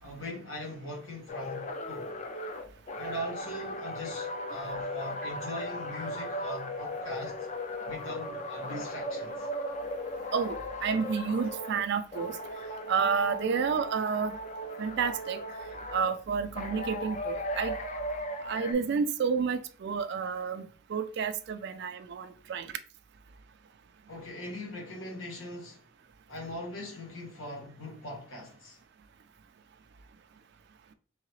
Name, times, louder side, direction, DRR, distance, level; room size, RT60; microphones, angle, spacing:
voice 1, 0.0-2.1 3.0-7.5 7.9-9.5 24.1-25.8 26.3-28.8, equal, 75° left, 1.5 m, -41 dB
sound 1, 1.3-11.8 12.1-16.1 16.6-18.7, left 1 dB, 35° left, 0.5 m, -37 dB
voice 2, 10.3-12.4 12.9-14.4 14.8-15.4 15.9-17.7 18.5-22.7, right 6 dB, 55° right, 0.3 m, -30 dB
3.7 x 3.2 x 3.1 m
head